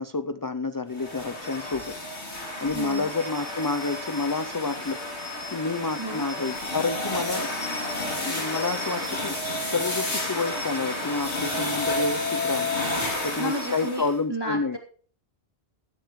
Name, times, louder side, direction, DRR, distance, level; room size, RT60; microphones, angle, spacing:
voice 1, 0.0-1.9 2.6-5.0 5.5-7.5 8.1-9.4 9.6-12.7 13.0-14.8, left 3 dB, 35° left, 10 dB, 0.3 m, -29 dB
sound 1, 0.9-14.2, left 2 dB, 80° left, 3.2 m, -31 dB
voice 2, 2.7-3.1 6.0-6.2 13.4-14.8, right 1 dB, 20° right, -1 dB, 3.0 m, -32 dB
16.0 x 11.5 x 3.2 m, 0.44 s
omnidirectional pair, 1.1 m